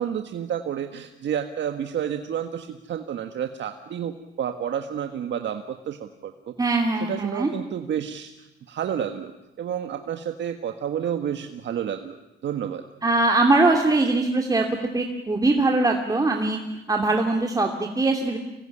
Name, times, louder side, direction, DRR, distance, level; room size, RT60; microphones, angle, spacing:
voice 1, 0.0-6.5 7.0-9.3 9.6-12.2 12.4-12.8, right 9 dB, 65° right, 6 dB, 1.6 m, -30 dB
voice 2, 6.6-7.5 13.0-14.7 14.9-16.6 16.9-18.4, right 2 dB, 20° right, 2 dB, 2.7 m, -21 dB
25.5 x 21.0 x 10.0 m, 0.98 s
cardioid pair, 90°, 20 cm